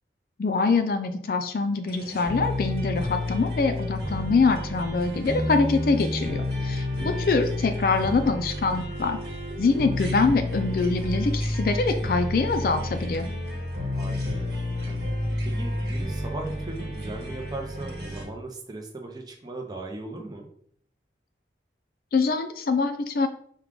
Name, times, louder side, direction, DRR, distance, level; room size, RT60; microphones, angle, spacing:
voice 1, 0.4-9.2 9.6-13.3 22.1-23.3, left 4 dB, 55° left, 8 dB, 0.4 m, -24 dB
sound 1, 1.9-18.2, left 1 dB, 70° right, 1.4 m, -30 dB
voice 2, 6.7-7.3 13.9-15.0 15.4-20.5, right 2 dB, 20° right, 2 dB, 0.5 m, -38 dB
4.6 x 2.3 x 3.7 m, 0.63 s
head